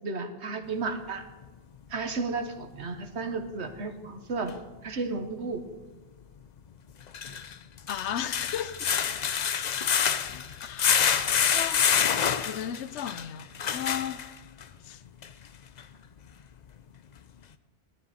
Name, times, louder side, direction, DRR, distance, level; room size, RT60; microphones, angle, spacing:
voice 1, 0.0-1.2 1.9-4.6 4.8-5.6, right 4 dB, 75° right, 1.4 m, -33 dB
sound 1, 4.5-4.6 7.0-14.6 15.2-15.3 15.8-15.9, left 8 dB, 50° left, 0.6 m, -27 dB
voice 2, 7.9-9.0 10.6-10.9 11.5-11.9 12.5-13.5 13.7-14.2 14.8-15.0, left 9 dB, 85° left, 1.0 m, -34 dB
17.5 x 11.5 x 4.2 m
omnidirectional pair, 1.1 m